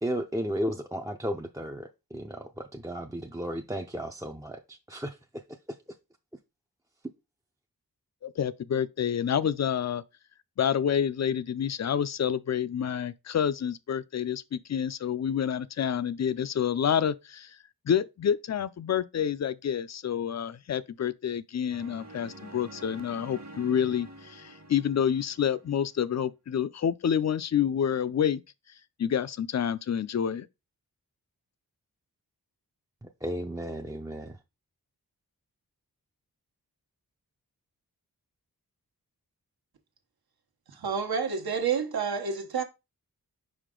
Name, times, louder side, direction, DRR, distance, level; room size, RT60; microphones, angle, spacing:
voice 1, 0.0-5.4 5.7-5.8 33.0-34.4, equal, 10° right, 0.5 m, -34 dB
voice 2, 8.2-10.0 10.6-17.6 17.9-28.4 29.0-30.5, left 8 dB, 45° left, 0.5 m, -28 dB
sound 1, 21.7-25.9, right 1 dB, 45° right, 1.3 m, -47 dB
voice 3, 40.7-42.6, right 6 dB, 75° right, 1.1 m, -29 dB
5.0 x 5.0 x 3.7 m
wide cardioid pair, 95°, 37 cm